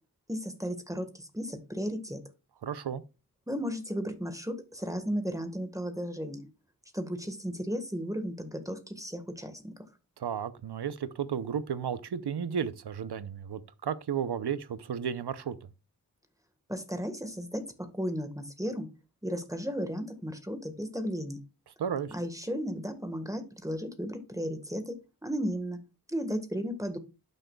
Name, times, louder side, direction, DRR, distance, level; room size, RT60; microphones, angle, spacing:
voice 1, 0.3-2.2 3.5-6.5 6.9-9.7 16.7-18.9 19.2-21.4 22.1-25.8 26.1-27.0, equal, 10° right, 1.4 m, -34 dB
voice 2, 2.6-3.0 10.2-15.6 21.8-22.1, right 7 dB, 90° right, 0.7 m, -33 dB
12.0 x 6.3 x 2.3 m
wide cardioid pair, 45°, 39 cm